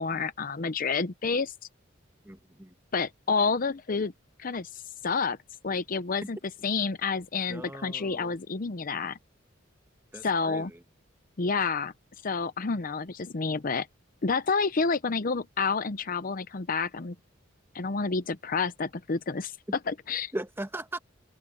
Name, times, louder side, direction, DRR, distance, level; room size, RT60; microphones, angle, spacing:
voice 1, 0.0-1.5 2.9-4.1 4.4-5.4 5.6-6.4 6.6-9.2 10.2-10.7 11.4-11.9 12.2-13.9 14.2-17.2 17.7-19.5 20.1-20.3, left 4 dB, 45° left, 0.7 m, -29 dB
voice 2, 2.2-2.7 7.5-8.4 10.1-10.8 20.3-21.0, right 1 dB, 10° right, 1.3 m, -39 dB
open air
head